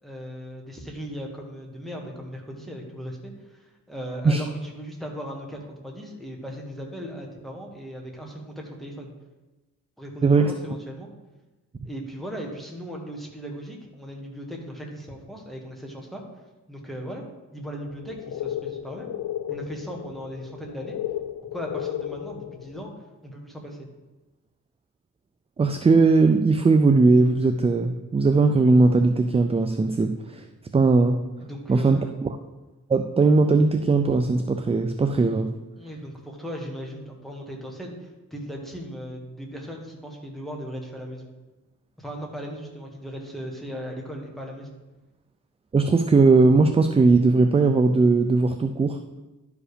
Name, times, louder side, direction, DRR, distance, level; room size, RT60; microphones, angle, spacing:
voice 1, 0.0-3.6 3.9-9.1 10.0-11.1 11.8-16.2 16.7-17.2 17.5-19.2 19.5-21.0 21.5-22.9 23.2-23.8 31.4-32.1 35.8-41.3 42.0-44.7, equal, ahead, 0 dB, 1.6 m, -37 dB
voice 2, 10.2-10.5 25.6-30.4 30.7-31.2 31.7-32.3 32.9-35.5 45.7-49.0, right 3 dB, 20° right, 7 dB, 0.3 m, -19 dB
sound 1, 17.9-22.9, left 11 dB, 80° left, 0.5 m, -34 dB
11.5 x 5.0 x 5.0 m, 1.1 s
wide cardioid pair, 140°, 32 cm